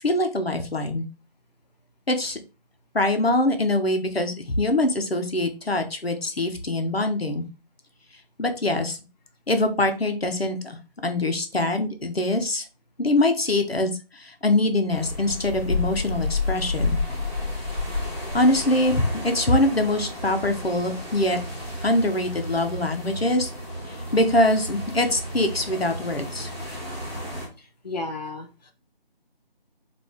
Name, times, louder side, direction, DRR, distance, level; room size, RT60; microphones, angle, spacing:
voice 1, 0.0-1.1 2.1-2.4 2.9-7.4 8.4-9.0 9.5-10.8 11.0-12.6 13.0-17.0 18.3-21.4 21.8-23.5 24.1-26.5, left 1 dB, 80° left, 6 dB, 1.1 m, -23 dB
sound 1, 14.9-27.5, left 2 dB, ahead, 1.7 m, -31 dB
voice 2, 27.6-28.7, left 2 dB, 45° left, 2 dB, 0.6 m, -34 dB
5.1 x 2.7 x 3.5 m, 0.32 s
figure-of-eight pair, 165°, 30 cm